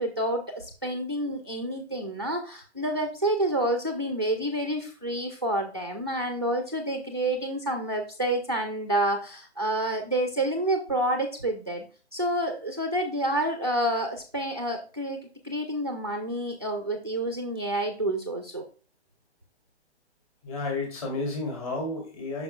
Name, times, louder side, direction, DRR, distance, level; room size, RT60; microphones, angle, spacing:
voice 1, 0.0-11.8 12.1-18.6, right 1 dB, 25° right, 5 dB, 0.4 m, -28 dB
voice 2, 20.4-22.4, left 2 dB, 30° left, -1 dB, 2.6 m, -31 dB
8.3 x 5.8 x 2.2 m, 0.37 s
hypercardioid pair, 170°, 34 cm